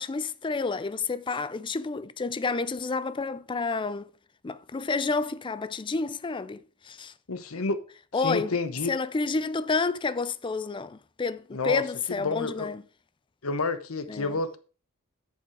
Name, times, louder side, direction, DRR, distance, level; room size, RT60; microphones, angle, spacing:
voice 1, 0.0-4.1 4.4-7.1 8.1-8.5 8.9-12.8 14.1-14.4, left 4 dB, 25° left, 0.4 m, -30 dB
voice 2, 7.3-7.9 8.2-8.9 11.5-11.8 12.2-12.7 13.4-14.6, left 3 dB, 90° left, 1.0 m, -29 dB
8.3 x 7.2 x 4.7 m
head